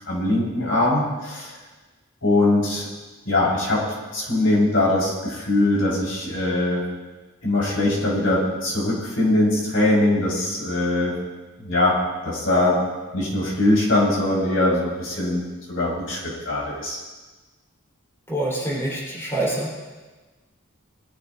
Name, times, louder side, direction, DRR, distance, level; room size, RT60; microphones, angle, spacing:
voice 1, 0.1-1.5 2.2-2.9 3.2-3.8 4.1-6.8 7.4-11.1 11.6-12.0 12.2-12.8 13.1-15.4 15.7-17.0, left 2 dB, 70° left, -5 dB, 5.1 m, -21 dB
voice 2, 18.3-19.8, right 1 dB, 10° left, -6 dB, 4.1 m, -26 dB
22.0 x 13.0 x 2.7 m, 1.3 s
head